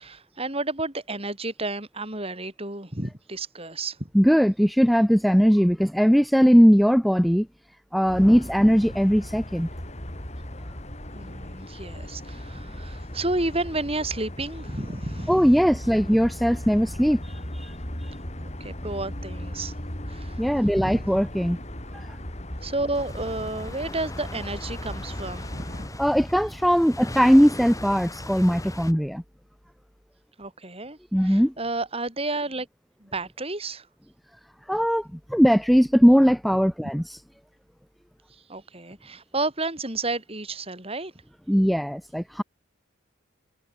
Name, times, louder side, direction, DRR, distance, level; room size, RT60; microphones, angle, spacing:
voice 1, 0.0-4.1 11.1-15.5 18.6-19.7 20.1-20.5 20.8-21.2 22.6-25.9 30.4-32.7 33.0-33.9 36.8-36.9 38.5-41.1, right 2 dB, 30° right, 5.4 m, -31 dB
voice 2, 4.1-7.5 7.9-9.7 15.3-18.2 20.4-21.6 21.9-22.1 26.0-29.2 31.1-31.5 34.7-37.2 41.5-42.4, equal, ahead, 0.5 m, -20 dB
sound 1, 8.0-25.9, left 1 dB, 35° left, 4.7 m, -37 dB
sound 2, 22.9-28.9, left 1 dB, 15° left, 7.8 m, -38 dB
head